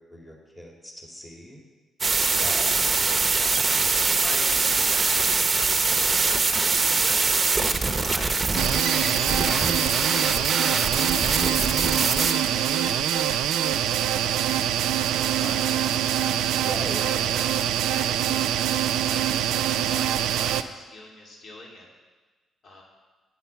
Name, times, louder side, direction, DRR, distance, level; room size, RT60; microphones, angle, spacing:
voice 1, 0.0-1.6 2.4-2.9 15.4-15.5 16.6-17.4, equal, 10° left, -1 dB, 2.2 m, -39 dB
sound 1, 2.0-12.3, right 4 dB, 30° right, 0.8 m, -23 dB
voice 2, 2.4-2.7 3.3-6.3 6.7-8.3 8.8-9.8 10.3-14.6 15.1-16.4 17.0-17.6 17.9-21.9 22.6-22.8, left 2 dB, 55° left, -2 dB, 2.6 m, -42 dB
sound 2, 8.6-20.6, right 10 dB, 85° right, 0.4 m, -24 dB
9.6 x 5.8 x 8.3 m, 1.3 s
cardioid pair, 90°, 0 cm